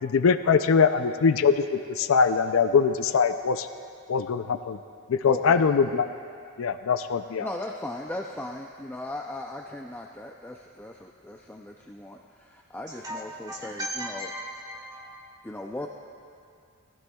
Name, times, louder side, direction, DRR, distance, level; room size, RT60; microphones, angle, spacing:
voice 1, 0.0-3.7 4.1-4.8 5.1-6.1 6.6-7.5, left 5 dB, 70° left, 10 dB, 0.4 m, -22 dB
voice 2, 5.3-5.6 7.4-14.3 15.4-15.9, left 1 dB, 10° left, 1 dB, 0.4 m, -38 dB
voice 3, 12.9-15.4, equal, 20° right, -4 dB, 2.4 m, -37 dB
19.5 x 15.0 x 2.3 m, 2.4 s
head